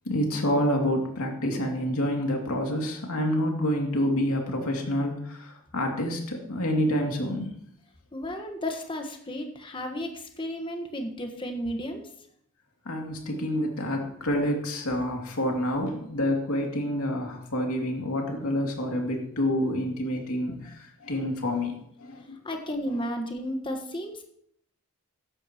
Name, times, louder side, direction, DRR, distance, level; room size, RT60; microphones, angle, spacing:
voice 1, 0.1-7.5 12.8-21.7 22.0-22.4, equal, 85° left, 1 dB, 2.5 m, -28 dB
voice 2, 8.1-12.0 22.4-24.2, equal, 25° left, 4 dB, 1.3 m, -33 dB
14.5 x 10.5 x 3.0 m, 0.69 s
head